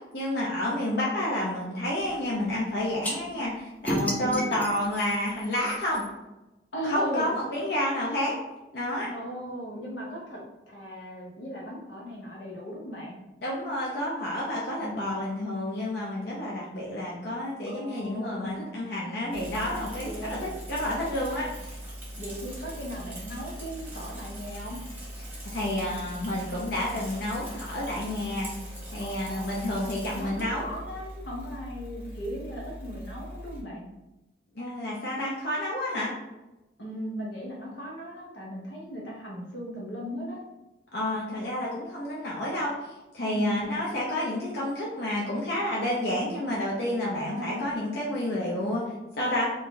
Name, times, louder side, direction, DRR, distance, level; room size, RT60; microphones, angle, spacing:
voice 1, 0.1-6.1 6.8-8.4 8.7-9.1 13.4-21.5 25.5-28.5 28.9-30.6 34.6-36.1 40.9-42.8 43.1-49.5, left 1 dB, 60° left, -5 dB, 0.6 m, -30 dB
sound 1, 3.0-3.2 3.9-6.1, equal, 10° left, 0.4 m, -32 dB
voice 2, 6.7-7.6 9.1-13.2 14.8-15.3 17.7-18.6 20.0-20.5 22.2-24.8 29.0-29.5 29.8-33.9 36.8-40.4 43.3-43.7 47.0-47.8, equal, 85° left, -3 dB, 1.0 m, -37 dB
Bicycle / Mechanisms, 19.3-33.6, equal, 10° right, 0.9 m, -41 dB
2.6 x 2.3 x 3.7 m, 1.0 s
head